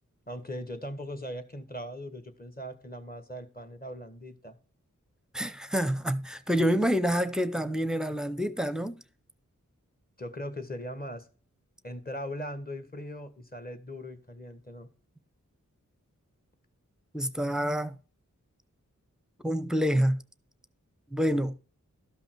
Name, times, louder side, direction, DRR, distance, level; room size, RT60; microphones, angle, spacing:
voice 1, 0.3-4.6 10.2-11.3 11.8-14.9, equal, 30° left, 1.4 m, -39 dB
voice 2, 5.3-9.0 17.1-17.9 19.4-20.2 21.1-21.5, equal, ahead, 0.7 m, -27 dB
12.5 x 5.5 x 4.5 m
wide cardioid pair, 65°, 31 cm